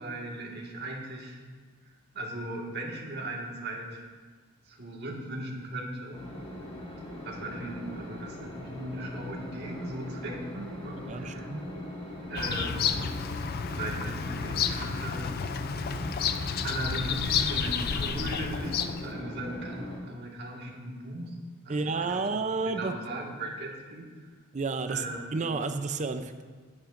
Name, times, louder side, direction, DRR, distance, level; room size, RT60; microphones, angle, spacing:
voice 1, 0.0-1.4 2.1-4.1 4.7-6.2 7.2-11.5 12.3-13.1 13.7-15.8 16.6-21.3 21.6-22.2 22.7-24.1 24.9-25.6, right 1 dB, 55° right, -2 dB, 1.7 m, -38 dB
sound 1, 6.1-20.0, left 1 dB, 25° left, 1.6 m, -40 dB
voice 2, 11.1-11.7 21.7-22.9 24.5-25.0 25.3-26.4, right 4 dB, 35° right, 9 dB, 0.5 m, -31 dB
Bird vocalization bird call bird song, 12.4-19.1, left 7 dB, 45° left, 0.4 m, -31 dB
12.0 x 9.9 x 2.5 m, 1.5 s
head